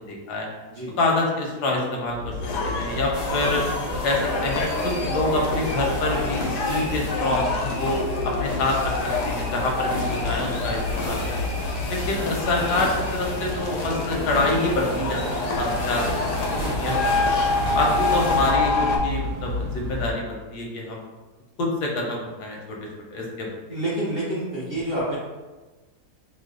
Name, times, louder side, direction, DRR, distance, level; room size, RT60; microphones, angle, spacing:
voice 1, 0.1-0.5 1.0-2.3 2.6-3.6 4.0-8.0 8.2-8.9 9.2-11.5 11.9-15.2 15.5-16.4 16.7-17.4 17.7-21.0 21.6-22.8 23.1-23.5, left 2 dB, 85° left, 0 dB, 1.3 m, -26 dB
sound 1, 2.1-20.1, left 3 dB, 80° right, 1.1 m, -32 dB
sound 2, 2.4-19.0, left 2 dB, 70° left, 0.8 m, -27 dB
sound 3, 3.1-18.5, equal, 35° left, 0.5 m, -37 dB
voice 2, 23.7-25.2, right 1 dB, 50° right, -8 dB, 0.7 m, -27 dB
3.1 x 2.0 x 3.6 m, 1.2 s
omnidirectional pair, 1.7 m